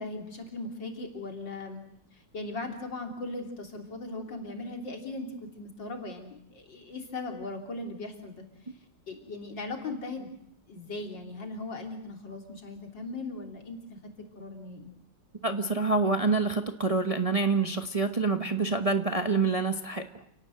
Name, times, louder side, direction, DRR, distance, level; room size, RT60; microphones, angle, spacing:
voice 1, 0.0-1.8 2.1-8.5 9.1-10.3 10.7-14.0 14.3-14.9, left 2 dB, 80° left, 3 dB, 4.1 m, -38 dB
voice 2, 15.4-20.0, right 3 dB, 25° right, 6 dB, 0.9 m, -26 dB
29.0 x 18.0 x 7.8 m, 0.75 s
omnidirectional pair, 2.0 m